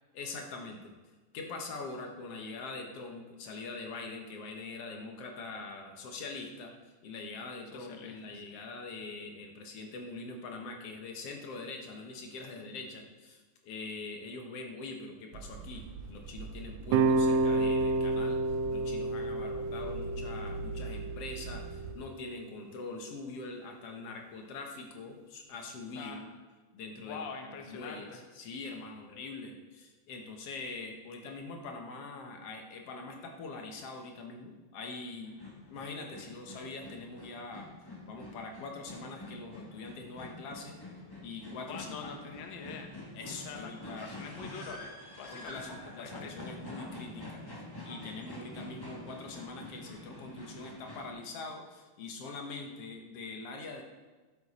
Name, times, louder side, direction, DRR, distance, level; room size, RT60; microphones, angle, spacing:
voice 1, 0.1-0.9 1.3-6.7 7.0-18.4 18.7-26.3 26.7-35.4 35.7-37.7 38.1-40.8 41.2-42.2 43.1-44.1 45.3-47.4 47.9-53.8, left 3 dB, 60° left, 3 dB, 1.9 m, -43 dB
voice 2, 7.7-8.4 25.9-26.2 27.0-28.2 41.7-42.9 43.4-46.3, left 6 dB, 85° left, 4 dB, 1.0 m, -45 dB
sound 1, 15.3-21.9, right 4 dB, 70° right, 1.5 m, -43 dB
sound 2, 16.9-22.0, right 3 dB, 90° right, 1.5 m, -30 dB
sound 3, 35.2-51.1, left 2 dB, 35° left, 0.3 m, -46 dB
12.0 x 9.5 x 4.2 m, 1.3 s
omnidirectional pair, 3.8 m